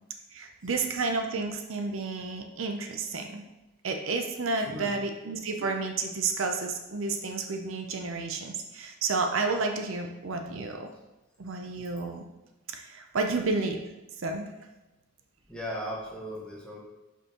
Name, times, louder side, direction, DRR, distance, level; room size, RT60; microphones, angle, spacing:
voice 1, 0.3-3.4 3.8-10.9 11.4-12.2 12.7-13.8 14.2-14.5, right 3 dB, 70° right, 4 dB, 0.6 m, -31 dB
voice 2, 4.5-4.9 15.5-16.8, equal, 5° left, -4 dB, 1.2 m, -37 dB
6.6 x 5.4 x 3.0 m, 1.0 s
head